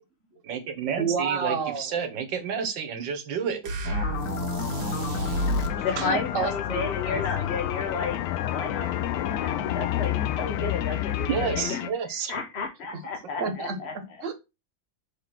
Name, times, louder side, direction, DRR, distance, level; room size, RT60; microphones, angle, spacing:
voice 1, 0.4-3.6 4.9-5.1 5.8-6.0 11.3-12.3, right 7 dB, 75° right, 1.8 m, -30 dB
voice 2, 1.0-2.0 6.0-7.5 13.4-14.3, right 5 dB, 45° right, 1.5 m, -30 dB
sound 1, 3.6-5.8, right 1 dB, 90° right, 2.0 m, -29 dB
sound 2, 3.8-11.9, left 10 dB, 70° left, 0.9 m, -34 dB
sound 3, 4.6-11.6, left 13 dB, 85° left, 1.3 m, -31 dB
voice 3, 5.8-8.2 8.5-11.8 12.3-13.9, left 5 dB, 50° left, 0.8 m, -32 dB
6.6 x 3.8 x 5.8 m
omnidirectional pair, 2.1 m